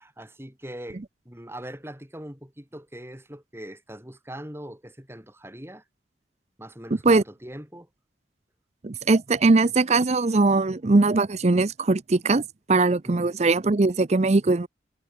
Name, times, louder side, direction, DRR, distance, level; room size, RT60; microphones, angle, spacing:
voice 1, 0.0-5.8 6.6-7.9 13.1-13.3, right 1 dB, 15° right, 5.4 m, -41 dB
voice 2, 8.8-12.4 12.7-14.7, right 3 dB, 40° right, 0.6 m, -20 dB
head